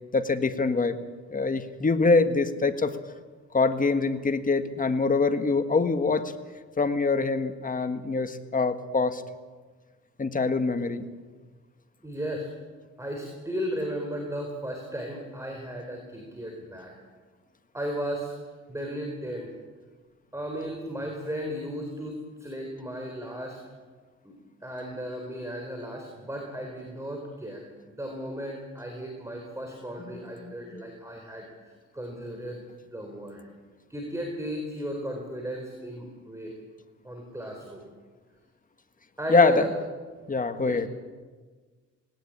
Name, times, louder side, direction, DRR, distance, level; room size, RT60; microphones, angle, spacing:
voice 1, 0.1-1.0 1.3-2.9 3.5-6.3 6.8-9.2 10.2-11.1 30.4-30.8 39.3-39.6 40.3-40.9, left 3 dB, 25° left, 9 dB, 1.7 m, -24 dB
voice 2, 12.0-12.5 13.0-16.9 17.7-18.3 18.7-19.5 20.3-23.6 24.2-24.4 24.6-32.6 32.9-33.4 33.9-36.5 37.0-37.8 39.2-39.7 40.6-40.8, equal, 10° right, 2 dB, 4.2 m, -35 dB
19.0 x 18.0 x 8.8 m, 1.4 s
cardioid pair, 90°, 30 cm